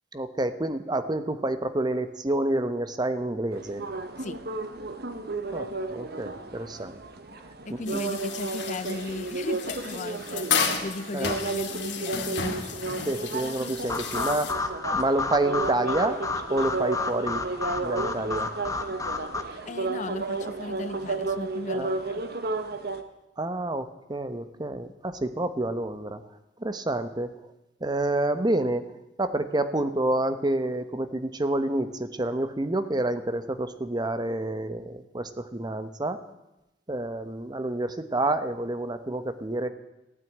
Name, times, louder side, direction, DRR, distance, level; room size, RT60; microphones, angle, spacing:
voice 1, 0.1-3.8 5.5-7.0 7.7-8.0 11.1-11.3 13.1-16.2 16.5-17.4 17.7-18.5 21.7-22.0 23.4-26.2 26.6-27.3 27.8-28.9 29.2-36.2 36.9-39.7, right 1 dB, 25° right, 11 dB, 1.0 m, -28 dB
sound 1, 3.5-23.0, right 3 dB, 60° right, 1.3 m, -33 dB
voice 2, 7.7-12.6 19.5-22.2, left 3 dB, 40° left, 15 dB, 0.5 m, -37 dB
sound 2, 7.9-14.5, left 6 dB, 70° left, 2.2 m, -32 dB
sound 3, 13.9-19.4, left 3 dB, 20° left, 1.1 m, -31 dB
16.0 x 9.3 x 9.2 m, 0.95 s
head